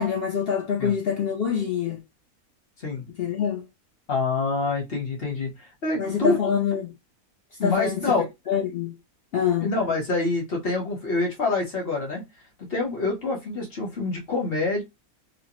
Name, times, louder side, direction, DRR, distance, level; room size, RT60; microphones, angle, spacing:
voice 1, 0.0-2.0 3.2-3.6 6.0-6.9 7.6-8.0 8.5-9.0 9.3-9.7, left 7 dB, 70° left, 0.5 m, -25 dB
voice 2, 4.1-5.5 5.8-6.4 7.6-8.3 9.6-12.2 12.6-14.8, left 3 dB, 45° left, 0.9 m, -26 dB
2.5 x 2.0 x 2.9 m
omnidirectional pair, 1.6 m